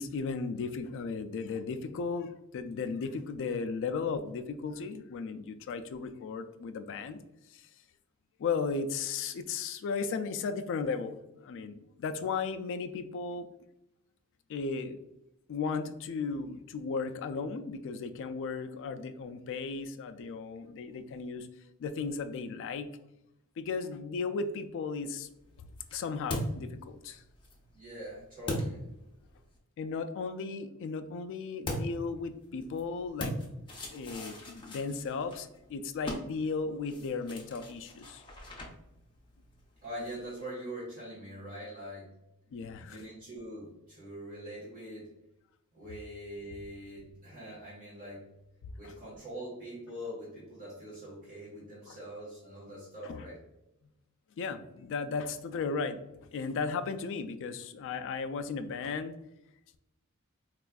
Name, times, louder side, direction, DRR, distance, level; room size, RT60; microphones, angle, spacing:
voice 1, 0.0-7.2 7.5-7.7 8.4-13.4 14.5-15.0 15.5-21.5 21.8-22.9 23.6-25.3 25.9-27.2 29.8-33.3 33.9-38.2 42.5-43.0 48.8-48.9 51.9-52.0 53.0-53.2 54.4-56.0 56.3-59.1, left 4 dB, 60° left, 9 dB, 0.3 m, -35 dB
sound 1, 25.2-29.6 31.6-40.5, left 1 dB, 20° left, 0.6 m, -41 dB
voice 2, 27.7-28.8 39.8-42.1 42.8-45.1 45.7-48.3 48.8-53.4, equal, 40° right, -8 dB, 1.3 m, -43 dB
4.2 x 2.4 x 2.3 m, 0.87 s
head